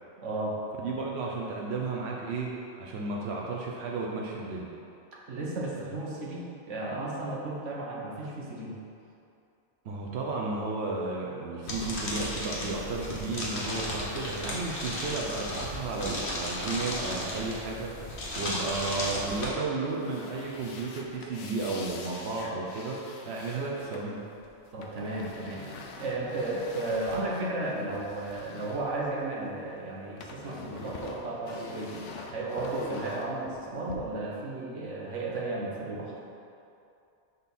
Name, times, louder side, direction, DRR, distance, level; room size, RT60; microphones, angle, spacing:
voice 1, 0.2-0.6 5.1-8.8 24.7-25.7 26.0-31.9 32.3-36.1, right 2 dB, 80° right, -3 dB, 1.4 m, -34 dB
voice 2, 0.8-2.5 2.8-4.7 9.8-23.0 23.2-24.2, right 3 dB, 65° right, -2 dB, 1.0 m, -33 dB
sound 1, 11.7-19.5, left 1 dB, 60° left, 1.5 m, -34 dB
sound 2, 19.8-29.6 29.9-33.9, left 3 dB, 80° left, 1.0 m, -45 dB
6.3 x 4.1 x 5.3 m, 2.6 s
omnidirectional pair, 1.2 m